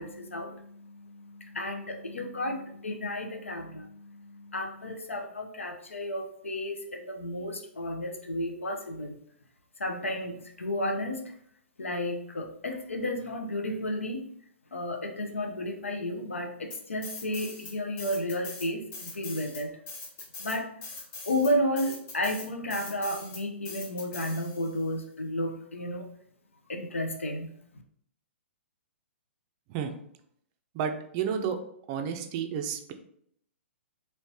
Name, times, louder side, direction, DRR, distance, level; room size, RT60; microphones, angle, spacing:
voice 1, 0.0-9.1 9.8-11.2 11.8-14.2 14.7-19.7 20.4-20.7 21.3-26.1 26.7-27.5, left 1 dB, 80° left, 4 dB, 0.6 m, -32 dB
sound 1, 16.7-17.7 18.0-24.8, left 3 dB, 30° left, 1.0 m, -42 dB
voice 2, 30.7-31.6 31.9-32.9, right 7 dB, 35° right, 6 dB, 0.4 m, -31 dB
3.1 x 3.1 x 2.7 m, 0.68 s
figure-of-eight pair, 115°, 7 cm